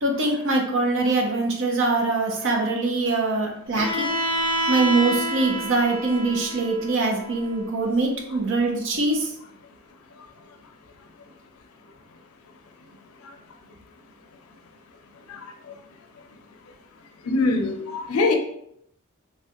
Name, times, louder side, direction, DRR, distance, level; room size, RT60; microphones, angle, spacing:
voice 1, 0.0-4.1 4.7-9.3, right 3 dB, 60° right, 1 dB, 0.7 m, -23 dB
Bowed string instrument, 3.7-7.6, equal, 10° left, 0.5 m, -28 dB
voice 2, 17.3-18.4, left 3 dB, 75° left, 4 dB, 0.5 m, -22 dB
3.2 x 2.4 x 2.9 m, 0.71 s
head